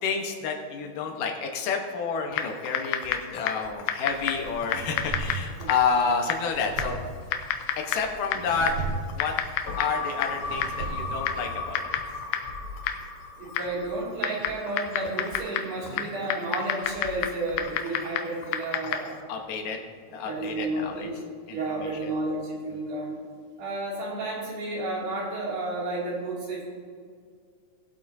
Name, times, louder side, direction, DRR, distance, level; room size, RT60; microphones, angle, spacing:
voice 1, 0.0-7.0 7.9-8.7 9.1-9.3 9.8-11.8 15.9-16.1 19.3-19.8 20.1-21.1 21.5-21.9, left 5 dB, 65° left, 2 dB, 2.4 m, -29 dB
Typing, 2.3-19.2, left 9 dB, 85° left, 2.7 m, -32 dB
sound 1, 4.1-11.5, right 3 dB, 50° right, 2.3 m, -37 dB
sound 2, 9.7-14.3 14.7-14.8, left 3 dB, 40° left, 2.4 m, -36 dB
voice 2, 13.4-19.2 20.2-21.2 21.5-23.2 23.6-26.6, right 2 dB, 75° right, -5 dB, 4.8 m, -32 dB
20.0 x 8.2 x 2.7 m, 2.1 s
omnidirectional pair, 4.7 m